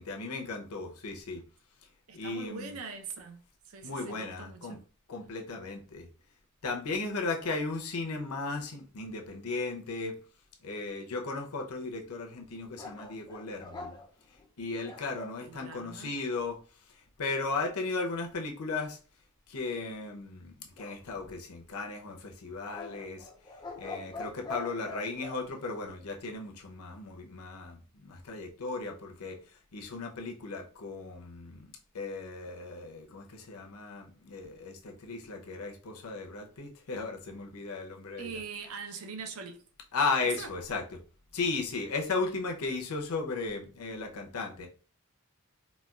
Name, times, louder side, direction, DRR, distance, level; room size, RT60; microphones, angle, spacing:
voice 1, 0.0-1.4 2.1-2.7 3.8-4.8 5.1-6.1 6.6-10.1 10.6-14.0 14.6-16.6 17.2-19.0 19.5-23.3 23.8-29.4 29.7-38.4 39.9-40.8 41.3-44.7, left 3 dB, 85° left, 0.7 m, -36 dB
voice 2, 2.1-3.4 3.7-4.8 15.4-16.1 38.2-39.6 40.2-40.5, right 5 dB, 75° right, 0.6 m, -42 dB
sound 1, 12.8-15.4 20.8-21.6 22.7-25.4, left 3 dB, 20° left, 0.4 m, -43 dB
4.1 x 2.3 x 2.3 m
head